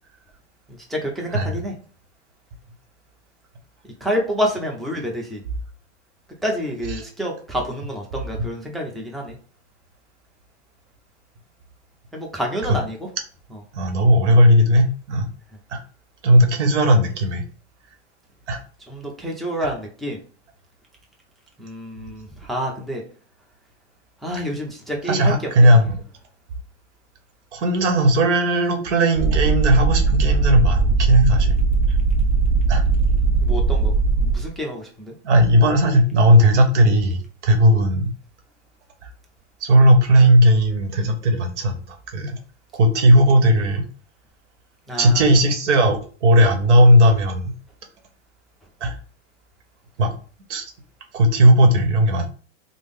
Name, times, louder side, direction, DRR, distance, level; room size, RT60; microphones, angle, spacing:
voice 1, 0.9-1.7 4.0-5.4 6.4-9.4 12.1-13.1 13.5-13.6 18.9-20.2 21.6-23.0 24.2-25.3 25.6-25.8 33.4-33.9 34.2-35.1 44.9-45.2, equal, ahead, -1 dB, 0.6 m, -28 dB
voice 2, 13.7-15.3 15.7-15.8 16.2-17.4 18.5-18.6 19.6-19.7 25.1-26.0 27.5-31.5 32.7-32.8 35.2-38.1 39.6-42.4 42.7-43.8 45.0-47.5 48.8-49.0 50.0-50.1 50.5-50.6 51.1-52.2, equal, 75° right, 5 dB, 1.0 m, -16 dB
sound 1, 29.2-34.5, right 4 dB, 40° right, 0.8 m, -19 dB
3.4 x 2.0 x 3.6 m, 0.41 s
hypercardioid pair, 115°, 35 cm